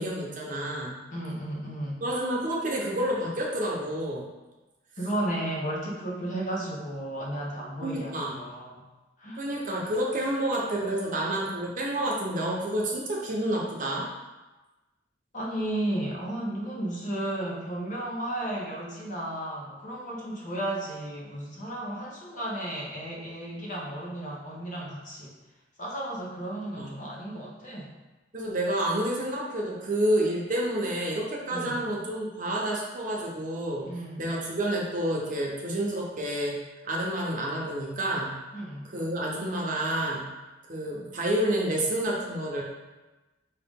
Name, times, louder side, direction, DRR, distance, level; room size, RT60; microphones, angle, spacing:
voice 1, 0.0-1.0 2.0-4.3 7.8-8.4 9.4-14.1 26.8-27.0 28.3-33.9 34.2-36.6 36.8-38.4 38.9-40.3 40.7-42.6, right 1 dB, 45° right, -2 dB, 0.8 m, -29 dB
voice 2, 1.1-2.0 5.0-8.8 9.2-9.4 15.3-25.3 25.8-27.9 31.5-31.9 33.8-34.3 38.5-38.9, right 1 dB, 45° left, -3 dB, 0.9 m, -34 dB
4.9 x 2.9 x 3.6 m, 1.1 s
head